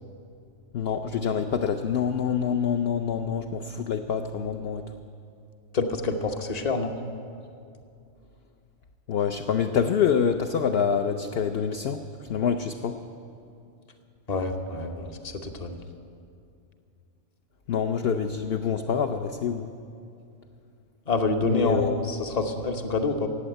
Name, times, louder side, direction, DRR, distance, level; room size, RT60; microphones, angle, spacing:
voice 1, 0.7-4.8 9.1-12.0 12.3-13.0 17.7-19.7 21.4-22.1, left 7 dB, 60° left, 6 dB, 0.7 m, -26 dB
voice 2, 5.7-6.9 14.3-15.8 21.1-23.3, left 3 dB, 35° left, 6 dB, 0.9 m, -27 dB
15.0 x 8.5 x 9.0 m, 2.5 s
omnidirectional pair, 1.4 m